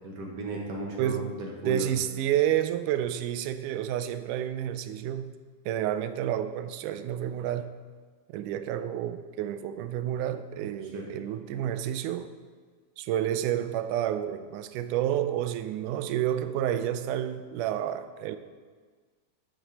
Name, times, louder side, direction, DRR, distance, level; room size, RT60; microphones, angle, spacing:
voice 1, 0.0-1.9 10.9-11.1, right 1 dB, 60° right, -2 dB, 2.1 m, -35 dB
voice 2, 1.0-1.3 1.7-5.3 5.7-7.7 8.3-12.3 13.0-18.4, right 11 dB, 85° right, 11 dB, 2.1 m, -30 dB
11.5 x 8.9 x 2.9 m, 1.5 s
omnidirectional pair, 3.6 m